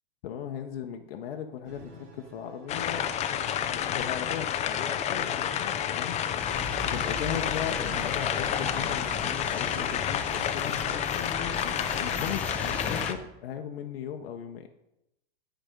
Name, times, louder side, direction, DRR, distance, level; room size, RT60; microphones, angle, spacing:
voice 1, 0.2-3.1 3.7-6.2 6.8-14.7, left 9 dB, 70° left, 4 dB, 1.0 m, -37 dB
sound 1, 1.6-8.4, right 5 dB, 50° right, 2.1 m, -56 dB
sound 2, 2.7-13.1, left 9 dB, 20° left, 0.6 m, -30 dB
sound 3, 6.4-13.1, left 2 dB, 5° left, 1.0 m, -37 dB
11.5 x 5.1 x 5.1 m, 0.87 s
hypercardioid pair, 130°, 31 cm